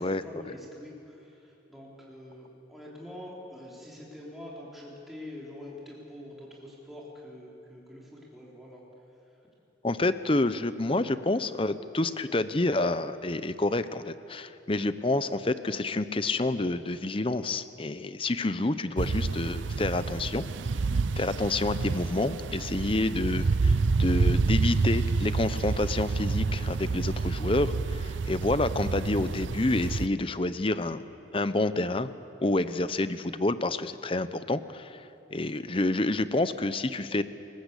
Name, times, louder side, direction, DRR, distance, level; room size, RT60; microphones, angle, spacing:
voice 1, 0.0-8.8 9.3-9.4, left 1 dB, ahead, -5 dB, 3.8 m, -45 dB
voice 2, 9.8-20.4 21.2-31.0 31.3-32.1 32.4-35.0 35.3-37.2, left 2 dB, 30° left, 13 dB, 0.8 m, -28 dB
sound 1, 19.0-30.1, right 4 dB, 85° right, 0.5 m, -28 dB
28.0 x 20.0 x 8.3 m, 2.8 s
head